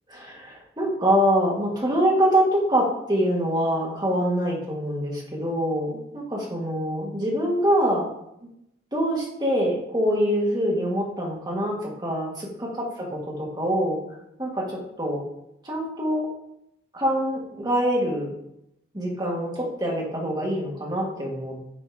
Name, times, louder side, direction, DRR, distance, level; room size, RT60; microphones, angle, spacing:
voice 1, 0.1-5.9 6.1-8.1 8.9-13.1 13.4-14.0 14.4-15.2 15.6-16.3 16.9-18.3 18.9-21.6, equal, 20° right, -3 dB, 1.7 m, -24 dB
8.7 x 4.3 x 3.5 m, 0.81 s
head